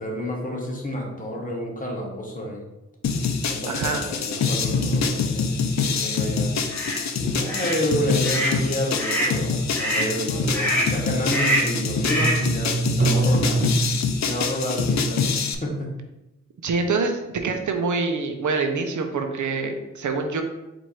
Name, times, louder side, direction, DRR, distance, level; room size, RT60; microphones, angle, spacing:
voice 1, 0.0-2.6 3.4-6.5 7.2-13.6 14.2-15.9, equal, 25° left, -2 dB, 1.2 m, -29 dB
sound 1, 3.0-15.6, left 5 dB, 65° left, 0.5 m, -25 dB
voice 2, 3.7-4.1 16.6-20.4, right 4 dB, 75° right, 5 dB, 0.6 m, -25 dB
sound 2, 6.1-6.6 6.9-7.0 7.2-7.6 8.3-8.6 9.2-9.3 9.9-13.8, right 3 dB, 25° right, 0.6 m, -27 dB
sound 3, 6.7-7.0 7.5-7.8 8.2-8.6 9.0-9.4 9.7-10.1 10.5-11.0 11.3-11.8 12.0-12.5, right 1 dB, 5° left, 1.1 m, -25 dB
4.6 x 2.6 x 4.2 m, 0.96 s
wide cardioid pair, 85°, 30 cm